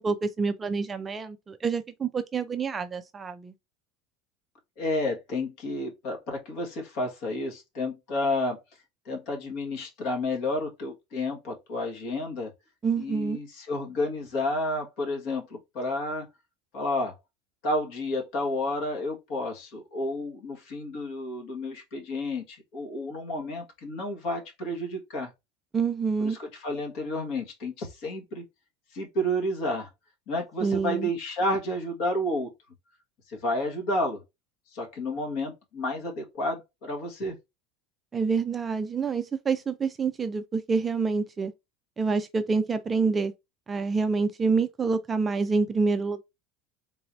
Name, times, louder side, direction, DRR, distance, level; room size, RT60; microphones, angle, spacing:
voice 1, 0.0-3.5 12.8-13.4 25.7-26.4 30.6-31.1 38.1-41.5 42.0-43.3 43.7-46.2, right 4 dB, 15° right, 0.3 m, -27 dB
voice 2, 4.8-8.6 9.0-12.5 13.0-16.3 16.7-17.1 17.6-25.3 26.2-28.4 28.9-29.9 30.3-32.5 33.3-34.2 34.7-37.4, left 1 dB, 50° left, 1.5 m, -31 dB
3.8 x 2.7 x 4.3 m
cardioid pair, 170°, 0 cm